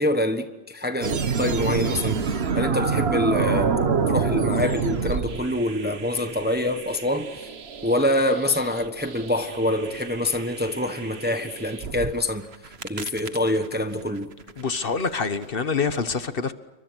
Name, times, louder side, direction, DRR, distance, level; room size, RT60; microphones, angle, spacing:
voice 1, 0.0-3.8 4.1-7.3 7.8-12.5 12.8-14.3, left 1 dB, 10° right, 1.2 m, -25 dB
sound 1, 1.0-12.1 12.5-15.5, right 5 dB, 55° right, 1.4 m, -28 dB
voice 2, 14.6-16.5, left 5 dB, 50° left, 1.4 m, -26 dB
28.5 x 24.5 x 6.3 m
omnidirectional pair, 1.3 m